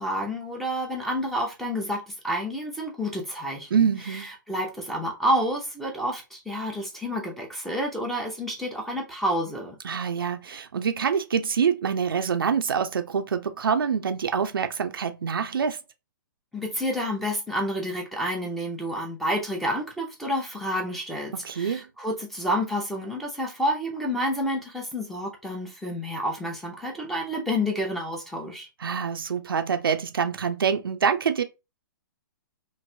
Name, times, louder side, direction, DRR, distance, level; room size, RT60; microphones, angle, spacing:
voice 1, 0.0-9.7 16.5-28.7, equal, ahead, 0.6 m, -29 dB
voice 2, 3.7-4.3 9.8-15.8 21.4-21.9 28.8-31.4, right 6 dB, 90° right, 0.5 m, -25 dB
3.1 x 2.5 x 2.7 m
hypercardioid pair, 145°, 11 cm